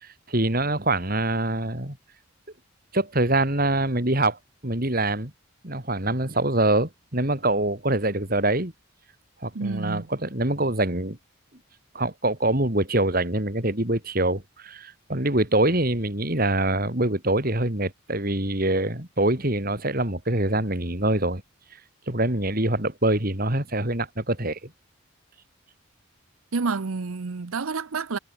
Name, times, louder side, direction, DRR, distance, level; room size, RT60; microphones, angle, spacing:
voice 1, 0.3-2.0 2.9-5.3 5.6-8.7 9.4-11.2 11.9-21.4 22.1-24.7, right 1 dB, 45° right, 3.3 m, -24 dB
voice 2, 9.5-10.0 26.5-28.2, right 4 dB, 85° right, 0.8 m, -29 dB
head